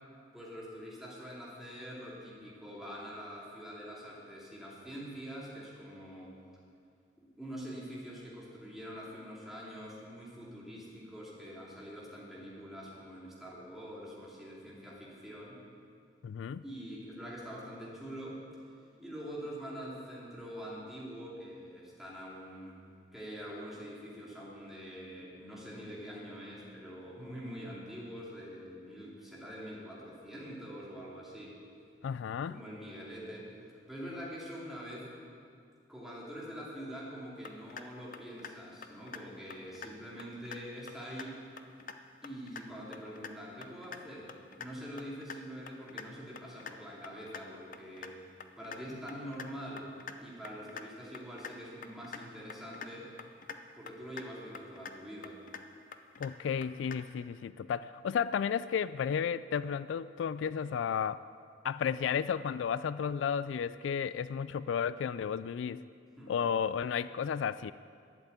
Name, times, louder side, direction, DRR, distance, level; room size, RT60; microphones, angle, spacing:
voice 1, 0.3-6.3 7.4-15.6 16.6-18.4 19.0-22.8 23.1-31.6 32.5-33.5 33.9-35.1 35.9-41.4 42.2-44.3 44.6-48.2 48.6-49.9 50.2-53.1 53.7-55.4 66.2-66.4, equal, ahead, -6 dB, 2.7 m, -45 dB
voice 2, 16.2-16.6 32.0-32.6 56.2-61.2 61.6-65.8 66.3-67.7, left 7 dB, 85° left, 16 dB, 0.3 m, -33 dB
sound 1, 37.5-37.8 38.1-38.5 38.8-39.2 39.5-39.9 40.2-40.6 40.9-41.3 41.6-42.0 42.2-42.6 42.9-43.3 43.6-44.0 44.3-44.7 45.0-45.4 45.7-46.0 46.4-46.7 47.0-47.4 47.7-48.1 48.4-48.8 49.1-49.5 49.8-50.2 50.4-50.8 51.1-51.5 51.8-52.2 52.5-52.9 53.2-53.6 53.9-54.3 54.5-54.9 55.2-55.6 55.9-56.3 56.6-57.0, left 6 dB, 45° left, 0.6 m, -44 dB
12.0 x 8.1 x 8.6 m, 2.2 s
head